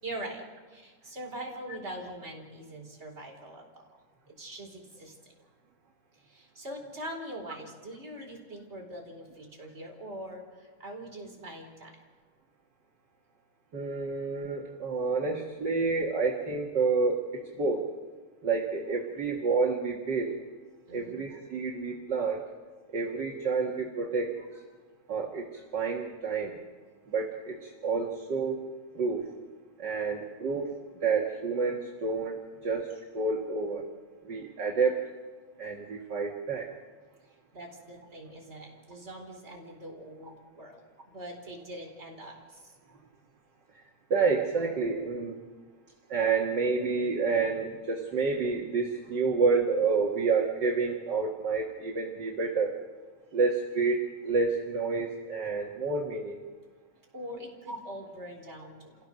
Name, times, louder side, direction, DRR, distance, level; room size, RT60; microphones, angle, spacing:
voice 1, 0.0-3.6 4.3-5.3 6.1-12.0 20.9-21.2 21.7-21.8 37.5-42.7 57.1-59.0, right 1 dB, 20° right, 0 dB, 4.5 m, -43 dB
voice 2, 13.7-17.8 18.4-20.3 20.9-22.4 22.9-24.6 25.1-26.6 27.1-28.6 28.9-29.3 29.8-33.8 34.2-35.0 35.6-36.7 43.7-43.8 44.1-45.4 46.1-52.8 53.3-56.4 57.7-57.8, right 4 dB, 40° right, 0 dB, 2.2 m, -29 dB
28.5 x 17.0 x 6.5 m, 1.4 s
omnidirectional pair, 3.3 m